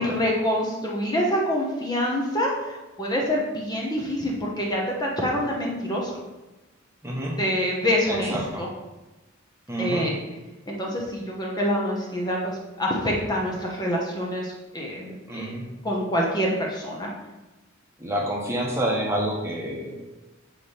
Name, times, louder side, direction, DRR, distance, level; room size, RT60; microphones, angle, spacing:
voice 1, 0.0-6.1 7.4-8.7 9.8-10.1 10.7-15.5 15.8-17.1, equal, 20° left, -2 dB, 1.0 m, -26 dB
voice 2, 7.0-7.3 8.1-8.6 9.7-10.1 15.3-15.6 18.0-19.9, right 1 dB, 15° right, -2 dB, 1.1 m, -28 dB
7.0 x 3.2 x 5.5 m, 1.1 s
head